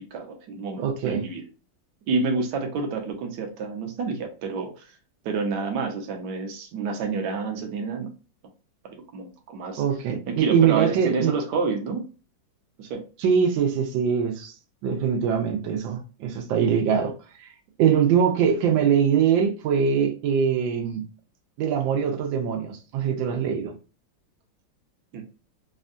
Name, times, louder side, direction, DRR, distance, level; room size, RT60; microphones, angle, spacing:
voice 1, 0.1-1.4 2.1-4.9 5.2-8.1 9.1-9.8 10.3-12.0 12.8-13.0 25.1-25.2, right 4 dB, 70° right, 1.2 m, -29 dB
voice 2, 0.8-1.2 9.8-11.3 13.2-14.5 14.8-17.1 17.4-17.5 17.8-21.0 21.6-23.7, right 7 dB, 85° right, 1.4 m, -22 dB
3.5 x 2.2 x 2.5 m
omnidirectional pair, 2.0 m